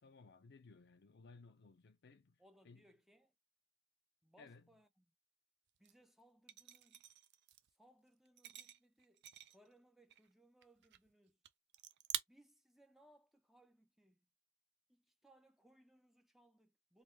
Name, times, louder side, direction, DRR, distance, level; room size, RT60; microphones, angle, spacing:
voice 1, 0.0-2.4 2.6-2.9 4.4-4.7, left 4 dB, 55° left, 0.6 m, -60 dB
voice 2, 2.4-3.3 4.2-5.1 5.8-7.0 7.8-11.4 12.3-14.3 14.9-17.0, right 1 dB, ahead, 0.5 m, -69 dB
sound 1, 5.8-5.9 6.5-7.7 8.2-9.7 10.1-10.3 10.6-11.1 11.4-11.5 11.7-12.2, right 12 dB, 55° right, 0.5 m, -46 dB
3.2 x 2.3 x 3.2 m
head